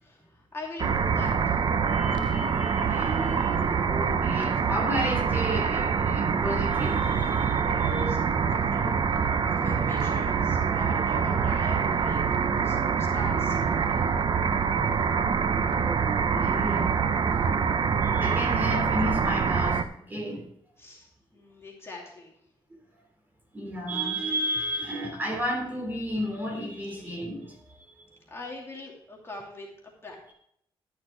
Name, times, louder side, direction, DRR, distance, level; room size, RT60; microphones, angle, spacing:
voice 1, 0.0-1.6 7.6-8.2 8.5-8.9 9.5-12.2 12.6-14.0 20.8-22.3 28.3-30.3, left 2 dB, 25° left, -2 dB, 2.6 m, -42 dB
sound 1, 0.8-19.8, right 6 dB, 50° right, 0.8 m, -25 dB
voice 2, 1.9-8.0 14.3-14.4 15.5-17.0 18.0-20.5 23.5-27.8, equal, 20° right, 1 dB, 3.3 m, -33 dB
12.0 x 6.5 x 4.7 m, 0.69 s
cardioid pair, 115°, 10 cm